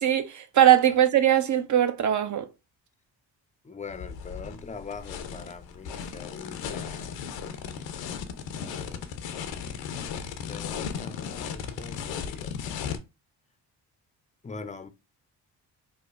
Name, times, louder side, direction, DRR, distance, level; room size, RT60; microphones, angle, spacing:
voice 1, 0.0-2.5, right 11 dB, 40° right, 0.6 m, -21 dB
voice 2, 3.6-7.2 8.6-9.0 10.5-13.0 14.4-14.9, left 5 dB, 15° left, 0.5 m, -42 dB
sound 1, 3.9-13.0, left 7 dB, 75° left, 0.7 m, -36 dB
5.0 x 2.1 x 2.4 m
supercardioid pair, 55°, 45 cm